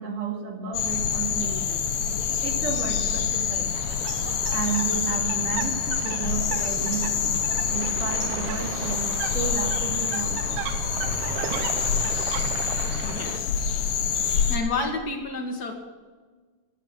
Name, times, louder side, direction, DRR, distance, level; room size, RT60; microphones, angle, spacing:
voice 1, 0.0-1.8 2.4-3.9 4.5-7.3 7.7-10.6, right 6 dB, 60° right, 2 dB, 3.6 m, -32 dB
sound 1, 0.7-14.6, left 7 dB, 65° left, 2.6 m, -26 dB
sound 2, 3.7-13.4, right 10 dB, 75° right, 1.9 m, -35 dB
voice 2, 13.0-13.5 14.5-15.7, left 3 dB, 35° left, 2 dB, 2.0 m, -30 dB
16.5 x 10.5 x 6.1 m, 1.4 s
omnidirectional pair, 4.4 m